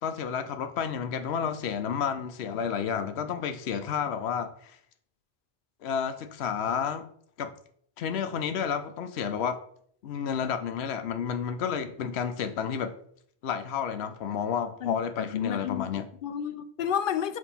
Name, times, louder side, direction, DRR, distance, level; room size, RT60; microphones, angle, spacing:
voice 1, 0.0-4.8 5.8-7.1 7.4-7.5 8.0-9.6 10.0-12.9 13.4-16.0, left 7 dB, 90° left, 0.9 m, -31 dB
voice 2, 14.8-17.4, left 9 dB, 60° left, 0.7 m, -31 dB
6.3 x 3.0 x 5.5 m
omnidirectional pair, 1.1 m